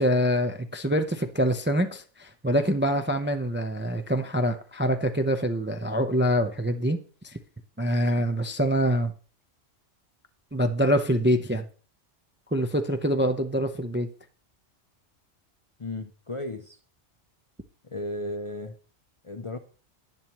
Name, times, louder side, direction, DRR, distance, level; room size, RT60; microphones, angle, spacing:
voice 1, 0.0-7.0 7.2-7.3 7.8-9.1 10.5-11.6 12.5-14.1, equal, 15° right, 7 dB, 0.5 m, -25 dB
voice 2, 15.8-16.8 17.8-18.7 19.2-19.6, left 1 dB, 35° left, 6 dB, 0.6 m, -34 dB
10.5 x 10.0 x 3.0 m, 0.40 s
omnidirectional pair, 1.2 m